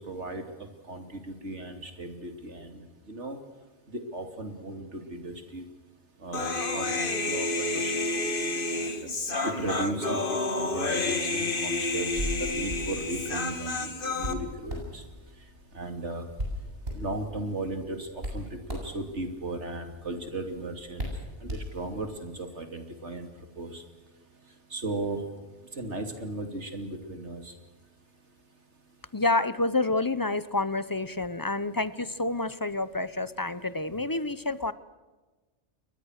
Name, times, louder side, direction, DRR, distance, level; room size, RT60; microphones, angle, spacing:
voice 1, 0.1-0.5 0.9-3.4 3.9-5.6 6.2-8.3 8.8-9.1 9.4-15.0 15.7-16.2 16.9-21.1 21.4-23.3 23.6-23.8 24.7-25.2 25.7-27.5, right 2 dB, 70° right, 6 dB, 3.2 m, -36 dB
Human voice, 6.3-14.3, left 2 dB, 45° left, 2.0 m, -30 dB
Hands, 12.1-22.2, equal, 55° right, 7.8 m, -39 dB
voice 2, 29.1-34.7, left 2 dB, 20° left, 16 dB, 0.6 m, -28 dB
29.0 x 22.5 x 6.6 m, 1.2 s
omnidirectional pair, 1.2 m